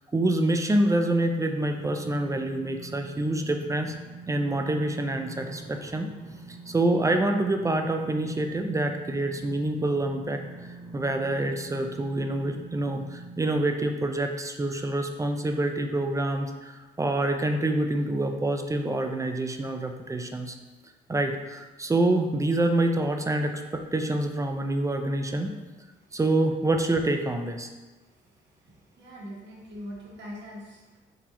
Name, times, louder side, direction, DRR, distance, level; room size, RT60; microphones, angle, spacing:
voice 1, 0.1-3.9 4.3-6.1 6.5-20.5 21.1-25.6 26.1-27.7, right 1 dB, 15° right, 5 dB, 0.4 m, -27 dB
sound 1, 1.6-13.5, right 3 dB, 10° left, 0.7 m, -44 dB
voice 2, 29.0-31.0, equal, 65° right, -4 dB, 1.3 m, -41 dB
3.9 x 3.6 x 2.9 m, 1.2 s
cardioid pair, 90°, 20 cm